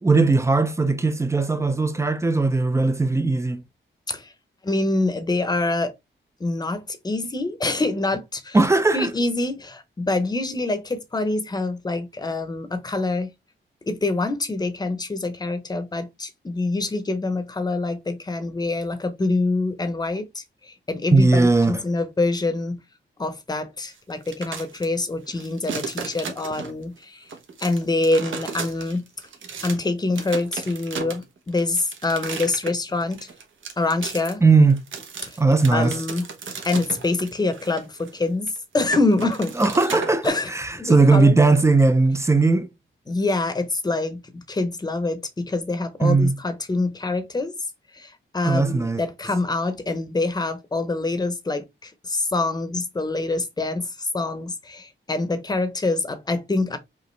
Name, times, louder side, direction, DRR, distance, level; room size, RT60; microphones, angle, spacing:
voice 1, 0.0-3.6 8.5-9.1 21.1-21.8 34.4-34.8 35.4-36.0 39.6-42.7 46.0-46.4 48.4-49.0, right 3 dB, 15° right, 0.4 m, -18 dB
voice 2, 4.6-5.9 6.4-8.6 8.9-13.3 13.9-22.8 23.2-27.2 27.6-29.0 29.6-33.2 33.8-34.4 35.7-36.3 36.6-39.5 40.2-40.5 40.8-41.4 43.1-47.5 47.9-56.8, left 2 dB, 20° left, 0.7 m, -25 dB
sound 1, 24.1-24.8 25.3-26.9 27.3-29.8 30.1-40.3, right 5 dB, 75° right, 1.1 m, -34 dB
5.1 x 2.6 x 3.2 m
wide cardioid pair, 140°, 20 cm